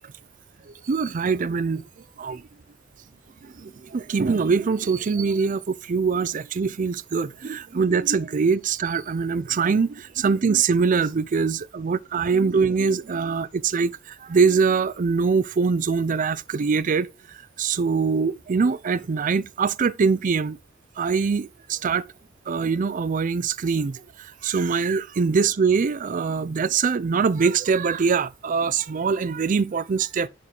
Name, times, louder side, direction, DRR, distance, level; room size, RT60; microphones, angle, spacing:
voice 1, 0.7-1.8 2.2-2.4 3.4-20.6 21.0-22.0 22.5-30.3, right 5 dB, 45° right, 0.4 m, -23 dB
11.0 x 4.4 x 3.9 m
head